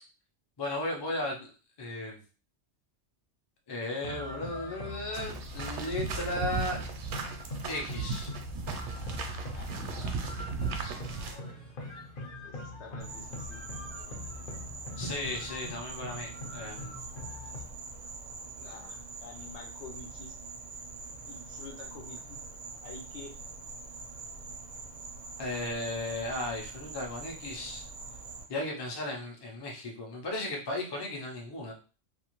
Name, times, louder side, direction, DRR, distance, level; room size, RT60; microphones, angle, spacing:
voice 1, 0.6-1.5 1.8-2.2 3.7-6.8 7.7-8.3 15.0-17.0 25.4-27.8 28.5-31.7, left 1 dB, 30° left, 0 dB, 0.5 m, -35 dB
sound 1, 4.0-17.6, left 2 dB, 55° left, 0.9 m, -42 dB
sound 2, 5.1-11.4, right 5 dB, 80° right, 0.9 m, -36 dB
voice 2, 9.5-10.3 12.4-13.6 18.4-20.4 21.2-22.4 22.8-23.3, left 3 dB, 75° left, 3 dB, 1.0 m, -48 dB
Insect, 13.0-28.4, right 4 dB, 50° right, 0.4 m, -44 dB
2.5 x 2.4 x 2.9 m, 0.36 s
omnidirectional pair, 1.2 m